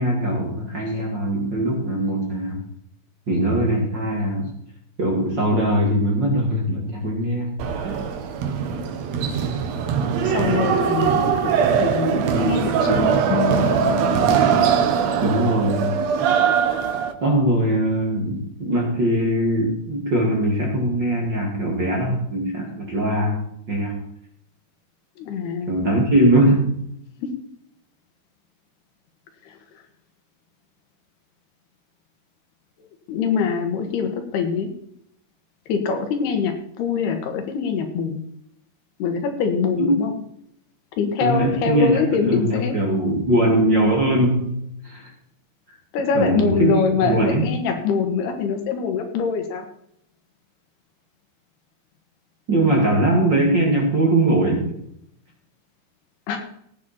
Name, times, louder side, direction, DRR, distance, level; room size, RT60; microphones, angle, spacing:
voice 1, 0.0-2.7 3.3-4.5 5.0-7.6 7.8-8.0 14.5-14.6 15.2-16.3 17.2-24.0 25.7-26.9 39.8-39.9 41.2-44.6 44.8-45.1 46.1-46.7 47.1-47.4 52.5-54.8, right 1 dB, 35° right, -1 dB, 2.3 m, -21 dB
sound 1, 7.6-17.1, right 7 dB, 75° right, 1.5 m, -21 dB
voice 2, 10.2-13.2 25.2-25.8 27.2-27.3 29.4-29.8 33.1-34.7 35.7-38.2 39.0-40.1 41.0-42.8 45.9-49.7 56.3-56.4, left 6 dB, 80° left, 5 dB, 3.6 m, -24 dB
sound 2, 13.3-16.4, left 9 dB, 60° left, 2.6 m, -31 dB
17.0 x 8.8 x 4.3 m, 0.71 s
omnidirectional pair, 4.6 m